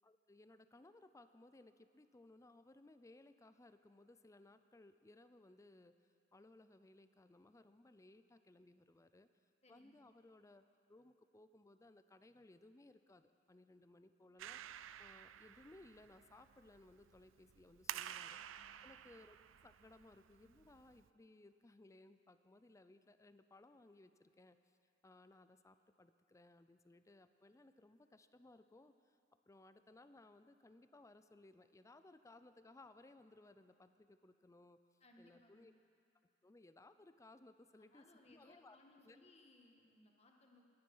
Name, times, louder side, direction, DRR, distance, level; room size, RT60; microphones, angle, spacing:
voice 1, 0.0-9.3 9.7-18.4 18.8-19.4 19.6-24.8 25.0-29.2 29.5-34.8 35.2-35.7 36.4-38.8 39.1-39.2, left 2 dB, 15° left, 11 dB, 0.5 m, -63 dB
voice 2, 9.6-10.0 18.2-18.8 35.0-35.7 37.9-40.7, left 2 dB, 35° left, 1 dB, 1.7 m, -66 dB
Clapping, 14.4-21.1, right 11 dB, 90° right, 0.4 m, -52 dB
20.0 x 10.5 x 5.6 m, 2.4 s
head